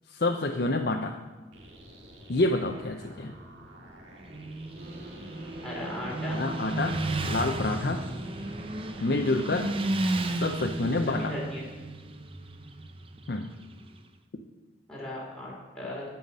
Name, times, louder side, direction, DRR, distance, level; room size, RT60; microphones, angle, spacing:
voice 1, 0.1-1.2 2.3-3.3 6.3-8.1 9.0-9.7 10.4-11.3 13.3-13.5, left 2 dB, 55° left, 2 dB, 0.6 m, -28 dB
sound 1, 1.5-11.3, right 1 dB, 90° right, 2.0 m, -50 dB
Motorcycle, 4.2-14.0, right 2 dB, 30° right, 0.6 m, -34 dB
sound 2, 4.7-10.3, right 1 dB, 55° right, 2.5 m, -45 dB
voice 2, 5.6-6.4 9.2-9.3 11.1-11.7 14.9-16.0, left 1 dB, 5° left, -6 dB, 3.0 m, -37 dB
15.5 x 5.7 x 5.5 m, 1.3 s
head